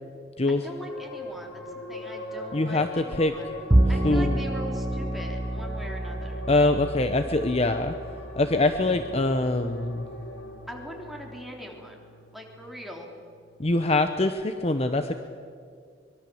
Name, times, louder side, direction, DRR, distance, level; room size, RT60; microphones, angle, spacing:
voice 1, 0.5-3.6 3.9-6.5 10.7-12.1 12.3-13.1, equal, ahead, 0 dB, 3.6 m, -41 dB
sound 1, 0.6-13.5, equal, 75° left, 4.3 m, -40 dB
voice 2, 2.5-3.3 4.0-4.4 6.5-7.9 8.4-10.1 13.6-15.1, left 2 dB, 35° left, 8 dB, 0.9 m, -24 dB
Bowed string instrument, 3.7-10.1, right 1 dB, 20° right, 0.7 m, -28 dB
24.0 x 23.0 x 7.9 m, 2.2 s
head